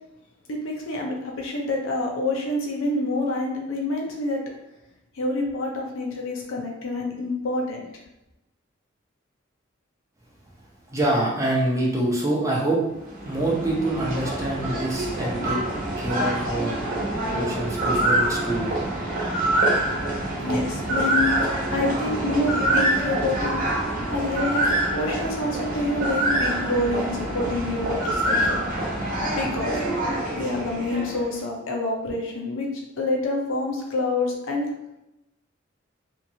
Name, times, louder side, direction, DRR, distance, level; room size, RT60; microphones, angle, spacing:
voice 1, 0.5-4.4 5.2-7.9 20.4-23.5 24.0-28.6 29.3-34.7, left 2 dB, 80° left, 0 dB, 0.6 m, -27 dB
voice 2, 10.9-12.9 13.2-15.6 16.0-16.8 17.3-18.8, right 1 dB, 15° right, -4 dB, 0.6 m, -25 dB
sound 1, 12.9-31.3, right 1 dB, 45° right, 0.9 m, -26 dB
2.8 x 2.5 x 2.7 m, 0.89 s
head